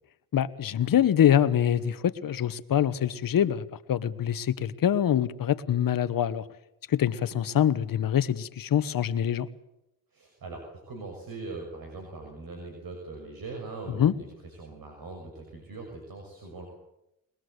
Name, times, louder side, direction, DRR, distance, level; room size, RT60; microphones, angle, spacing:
voice 1, 0.3-6.4 6.9-9.5 14.0-14.1, left 10 dB, 60° left, 14 dB, 1.3 m, -25 dB
voice 2, 10.1-16.7, right 3 dB, 65° right, 2 dB, 6.2 m, -41 dB
22.0 x 21.0 x 8.1 m, 0.86 s
cardioid pair, 85°, 38 cm